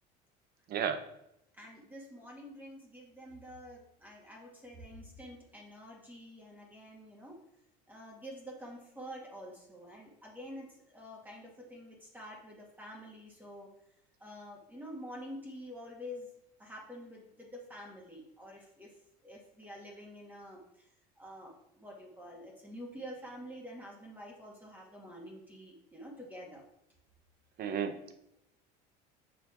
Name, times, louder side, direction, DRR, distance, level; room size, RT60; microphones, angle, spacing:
voice 1, 0.7-1.0 27.6-28.1, right 7 dB, 45° right, 9 dB, 0.9 m, -33 dB
voice 2, 1.6-7.4 7.9-13.7 14.2-16.3 16.6-18.9 19.2-20.9 21.2-26.6 27.9-28.0, equal, 10° right, -2 dB, 1.9 m, -48 dB
5.7 x 5.0 x 4.2 m, 0.81 s
supercardioid pair, 95°, 21 cm